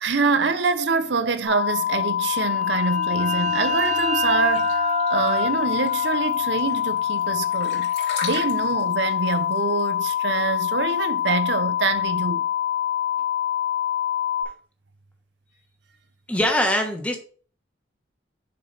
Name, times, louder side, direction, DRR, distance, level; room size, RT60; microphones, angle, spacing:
voice 1, 0.0-7.9 8.2-12.5, right 4 dB, 75° right, 0.7 m, -25 dB
sound 1, 1.4-14.4, left 11 dB, 55° right, 2.1 m, -25 dB
sound 2, 2.5-8.0, right 2 dB, 40° right, 0.5 m, -30 dB
sound 3, 3.8-11.5, left 4 dB, 70° left, 2.6 m, -38 dB
voice 2, 16.3-17.2, left 1 dB, 5° left, 1.3 m, -22 dB
6.7 x 5.2 x 4.1 m
head